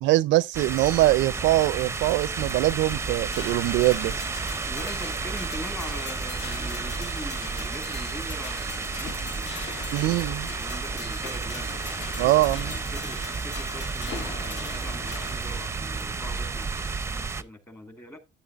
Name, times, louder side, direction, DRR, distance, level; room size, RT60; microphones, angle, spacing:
voice 1, 0.0-4.1 9.9-10.5 12.2-12.7, right 17 dB, 70° right, 0.4 m, -23 dB
sound 1, 0.5-17.4, right 4 dB, 15° right, 0.5 m, -32 dB
sound 2, 3.3-15.8, left 5 dB, 65° left, 1.7 m, -42 dB
voice 2, 4.6-11.8 12.4-18.2, left 1 dB, 15° left, 1.8 m, -42 dB
sound 3, 8.6-16.1 16.7-16.8, left 6 dB, 40° left, 0.8 m, -47 dB
12.5 x 9.2 x 2.4 m
cardioid pair, 120°, 19 cm